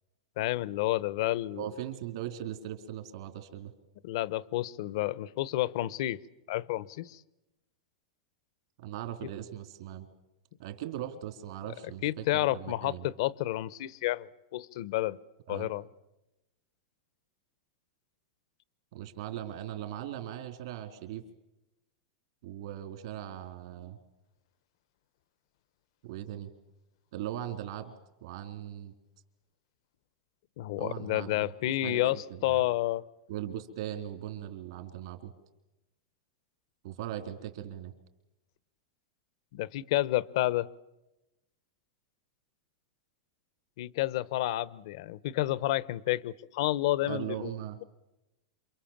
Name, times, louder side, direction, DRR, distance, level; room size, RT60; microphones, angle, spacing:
voice 1, 0.4-1.6 4.0-6.2 6.5-7.2 12.0-15.2 15.5-15.8 30.6-33.0 39.5-40.7 43.8-47.5, left 16 dB, 65° left, 19 dB, 0.9 m, -30 dB
voice 2, 1.6-3.7 8.8-10.1 10.6-13.1 15.5-15.7 18.9-21.2 22.4-24.0 26.0-26.5 27.1-27.9 28.2-28.9 30.8-32.6 33.3-35.3 36.8-37.9 47.0-47.8, right 11 dB, 65° right, 6 dB, 3.5 m, -39 dB
28.0 x 24.5 x 7.4 m, 0.97 s
supercardioid pair, 145°, 3 cm